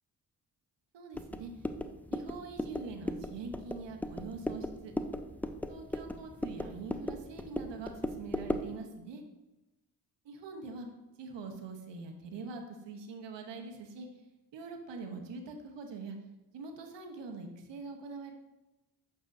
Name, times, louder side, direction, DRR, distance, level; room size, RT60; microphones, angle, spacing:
voice 1, 0.9-1.5 2.1-4.9 5.7-9.2 10.2-10.9 11.2-14.1 14.5-16.2 16.5-18.3, right 4 dB, 70° right, 4 dB, 1.0 m, -44 dB
sound 1, 1.1-8.8, left 1 dB, 5° left, 0.3 m, -37 dB
8.1 x 4.7 x 2.6 m, 1.0 s
supercardioid pair, 45°, 45 cm